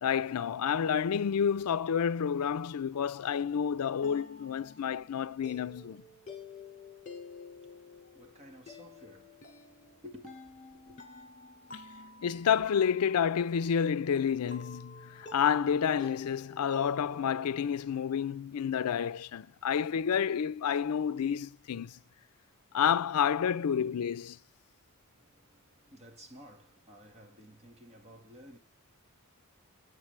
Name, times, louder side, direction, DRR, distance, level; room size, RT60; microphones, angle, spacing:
voice 1, 0.0-6.0 12.2-22.0 22.7-24.4, left 7 dB, 80° left, 0.4 m, -29 dB
sound 1, 4.0-18.0, left 3 dB, 35° left, 2.2 m, -50 dB
voice 2, 7.5-11.0 25.1-28.6, equal, 30° right, 1.7 m, -54 dB
8.0 x 7.4 x 3.2 m
head